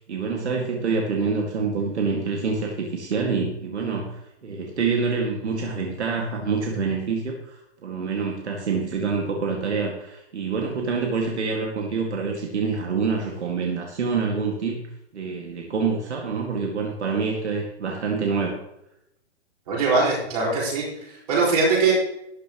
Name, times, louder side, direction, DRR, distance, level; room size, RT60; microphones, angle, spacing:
voice 1, 0.0-14.8 15.1-18.6, right 4 dB, 70° right, 0 dB, 2.1 m, -26 dB
voice 2, 19.7-21.9, right 4 dB, 35° right, -4 dB, 4.9 m, -22 dB
13.0 x 10.5 x 3.1 m, 0.82 s
hypercardioid pair, 180°, 35 cm